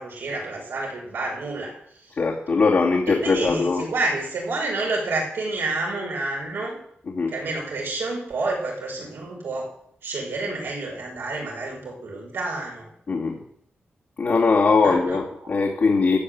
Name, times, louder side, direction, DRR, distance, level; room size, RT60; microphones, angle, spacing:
voice 1, 0.0-1.8 3.1-6.8 7.3-9.7 10.0-12.9 14.8-15.2, right 2 dB, 85° right, -2 dB, 5.8 m, -29 dB
voice 2, 2.2-3.8 7.1-7.3 13.1-13.4 14.2-16.2, left 4 dB, 65° left, -5 dB, 2.7 m, -20 dB
14.0 x 6.5 x 8.3 m, 0.69 s
cardioid pair, 80°, 4 cm